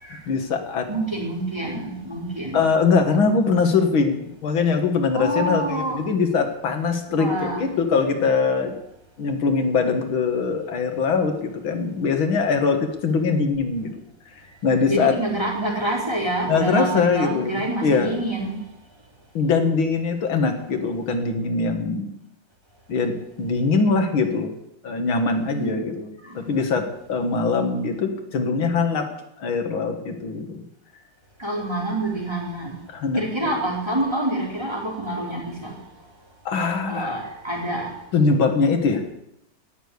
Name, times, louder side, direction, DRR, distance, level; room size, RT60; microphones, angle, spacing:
voice 1, 0.3-0.9 2.5-8.8 9.2-13.9 14.6-15.2 16.5-18.1 19.3-22.1 22.9-24.5 24.8-29.1 29.4-30.6 32.9-33.5 36.5-37.2 38.1-39.0, left 4 dB, 90° left, 6 dB, 2.4 m, -22 dB
voice 2, 0.9-2.7 5.1-6.0 7.1-7.7 14.9-18.6 25.5-25.7 26.2-26.3 31.4-32.7 33.1-35.7 36.6-37.9, right 1 dB, 15° right, -3 dB, 3.9 m, -27 dB
18.0 x 6.8 x 9.6 m, 0.83 s
omnidirectional pair, 2.1 m